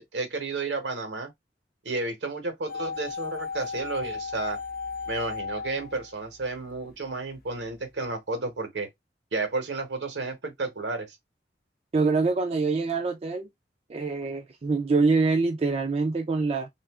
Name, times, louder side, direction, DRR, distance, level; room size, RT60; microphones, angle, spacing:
voice 1, 0.0-1.3 1.8-4.6 5.1-8.9 9.3-11.2, right 3 dB, 75° right, 1.0 m, -32 dB
sound 1, 2.7-6.8 7.0-7.1, left 5 dB, 55° left, 0.7 m, -35 dB
voice 2, 11.9-13.5 13.9-16.7, right 4 dB, 35° right, 0.3 m, -25 dB
2.8 x 2.5 x 3.4 m
head